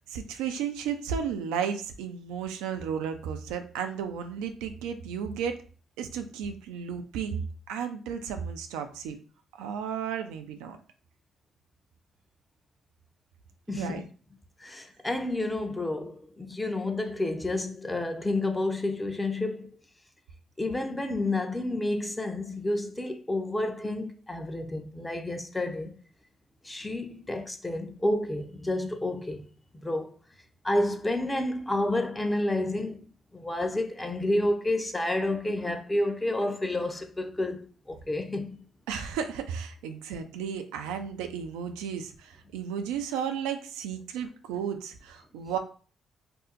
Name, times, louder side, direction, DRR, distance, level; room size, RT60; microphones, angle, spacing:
voice 1, 0.1-5.6 6.0-9.2 9.5-10.8 13.7-14.0 38.9-45.6, right 7 dB, 85° right, 0.3 m, -33 dB
voice 2, 13.7-14.0 14.6-19.8 20.6-25.9 26.6-29.5 29.8-30.1 30.6-33.0 33.3-38.6, left 1 dB, 20° left, 0.6 m, -30 dB
2.6 x 2.0 x 3.7 m
hypercardioid pair, 45°, 0 cm